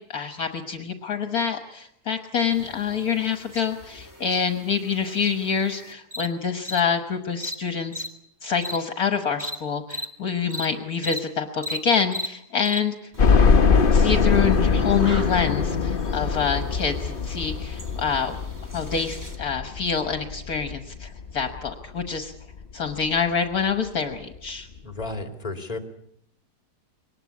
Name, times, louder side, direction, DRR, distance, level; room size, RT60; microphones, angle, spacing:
voice 1, 0.1-8.0 8.4-13.0 13.9-18.4 18.7-22.3 22.7-24.7, left 6 dB, 60° left, 7 dB, 1.7 m, -26 dB
sound 1, 2.5-6.3 6.6-6.8 7.4-7.6 7.9-8.1 8.6-8.8 9.4-9.6 9.9-10.1 10.5-10.7 11.0-11.2 11.6-11.8 12.1-12.3 12.6-12.8 13.1-19.4, left 1 dB, 10° right, 2.2 m, -38 dB
sound 2, 13.2-22.1 22.6-22.7 23.0-23.1 24.3-24.4 24.7-24.8, left 5 dB, 35° left, 1.0 m, -22 dB
voice 2, 24.8-25.8, left 2 dB, 20° left, 5 dB, 2.6 m, -32 dB
23.0 x 19.5 x 8.4 m, 0.74 s
omnidirectional pair, 1.8 m